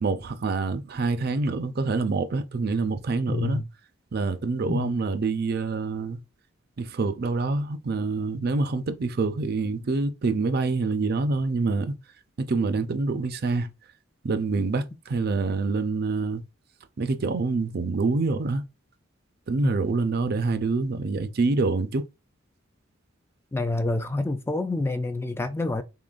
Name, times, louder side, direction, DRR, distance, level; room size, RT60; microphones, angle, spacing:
voice 1, 0.0-3.6 4.1-6.2 6.8-11.9 12.4-13.7 14.2-16.4 17.0-18.6 19.5-22.0, right 3 dB, 50° right, 0.5 m, -26 dB
voice 2, 3.3-3.7 4.7-4.9 19.6-19.7 23.5-25.8, left 2 dB, 10° left, 0.3 m, -27 dB
3.8 x 3.8 x 2.4 m
head